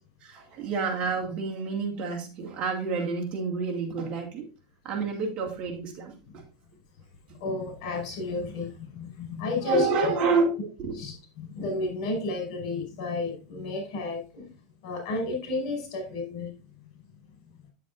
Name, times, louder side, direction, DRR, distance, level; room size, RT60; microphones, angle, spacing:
voice 1, 0.2-4.5 4.8-6.4 9.6-11.0, right 4 dB, 35° right, 2.2 m, -29 dB
voice 2, 7.4-10.3 11.0-14.5 14.8-16.5, left 3 dB, 60° left, 5.3 m, -32 dB
9.5 x 8.1 x 2.6 m
supercardioid pair, 145°, 4 cm